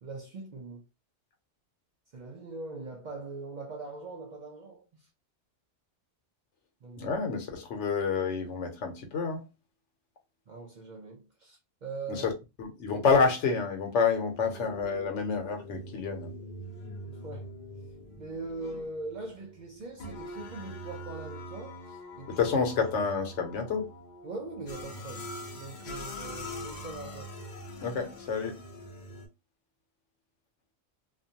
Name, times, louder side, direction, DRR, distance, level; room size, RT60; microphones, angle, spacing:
voice 1, 0.0-0.8 2.1-4.9 6.8-7.2 10.5-12.3 17.0-17.5 18.2-22.5 24.2-27.3, right 3 dB, 60° right, 0.5 m, -41 dB
voice 2, 7.0-9.4 12.1-12.3 12.6-16.3 22.4-23.9 27.8-28.6, left 5 dB, 85° left, 1.0 m, -28 dB
sound 1, 14.3-29.3, equal, 50° left, 0.6 m, -43 dB
2.5 x 2.2 x 2.7 m
omnidirectional pair, 1.2 m